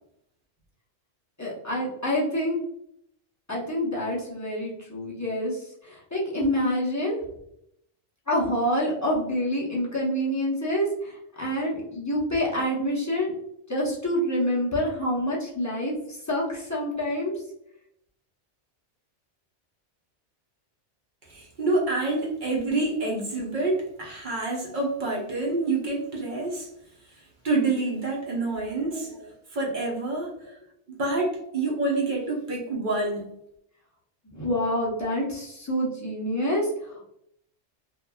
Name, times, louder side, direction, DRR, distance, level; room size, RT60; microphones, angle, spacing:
voice 1, 1.4-2.6 3.5-7.2 8.3-13.3 13.7-17.4 28.9-29.0 34.2-37.2, equal, 20° left, -6 dB, 0.5 m, -27 dB
voice 2, 21.3-26.7 27.2-30.6 31.0-33.2, right 2 dB, 50° right, -2 dB, 0.8 m, -27 dB
2.9 x 2.4 x 2.2 m, 0.76 s
omnidirectional pair, 1.2 m